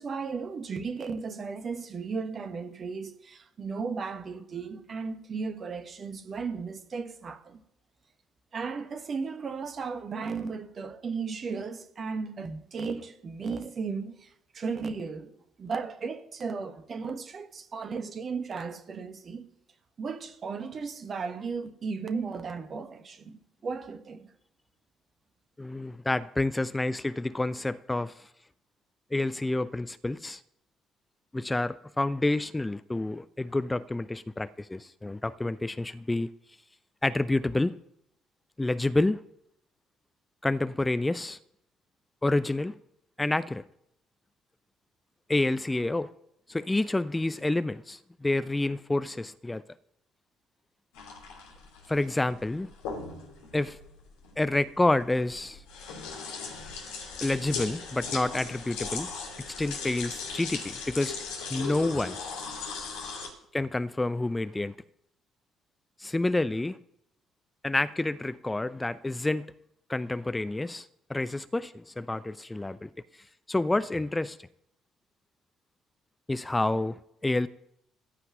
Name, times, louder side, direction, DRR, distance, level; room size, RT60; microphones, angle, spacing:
voice 1, 0.0-7.6 8.5-14.3 14.5-15.3 15.6-19.5 20.0-24.3, right 5 dB, 40° right, 1.4 m, -35 dB
voice 2, 25.6-28.3 29.1-30.4 31.3-36.3 37.0-37.7 38.6-39.2 40.4-41.4 42.2-42.7 43.2-43.6 45.3-46.1 46.5-49.6 51.9-52.7 53.5-53.8 54.4-55.6 57.2-59.1 59.5-61.1 61.5-62.2 63.5-64.7 66.0-66.8 67.6-69.5 69.9-74.4 76.3-77.5, left 2 dB, 15° left, 0.5 m, -28 dB
sound 1, 50.9-63.3, left 5 dB, 65° left, 2.5 m, -38 dB
14.5 x 5.7 x 9.1 m
figure-of-eight pair, 45°, 0 cm